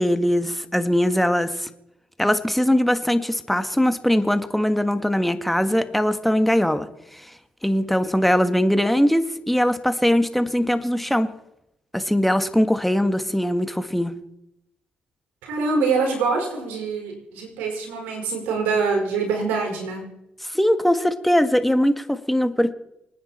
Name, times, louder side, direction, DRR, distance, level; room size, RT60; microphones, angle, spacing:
voice 1, 0.0-1.7 2.2-7.3 7.6-11.3 11.9-14.2 20.4-22.7, equal, 5° left, 10 dB, 1.6 m, -21 dB
voice 2, 15.4-20.1, right 4 dB, 90° right, 1 dB, 4.9 m, -24 dB
26.0 x 9.6 x 4.3 m, 0.84 s
supercardioid pair, 60°, 3 cm